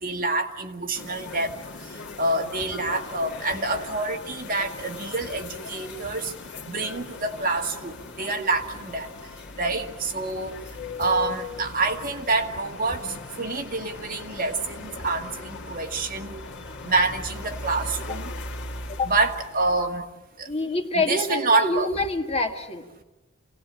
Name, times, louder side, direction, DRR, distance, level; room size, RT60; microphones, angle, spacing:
voice 1, 0.0-1.5 2.2-6.3 6.7-9.1 9.6-10.6 11.0-13.0 13.4-16.3 16.8-18.3 19.1-20.1 20.4-20.5 20.9-21.9, right 3 dB, 45° right, 3 dB, 2.0 m, -27 dB
sound 1, 0.9-20.0, left 3 dB, 60° left, 2.2 m, -39 dB
voice 2, 20.5-23.0, left 2 dB, 30° left, 4 dB, 1.9 m, -26 dB
28.0 x 18.0 x 9.0 m, 1.1 s
head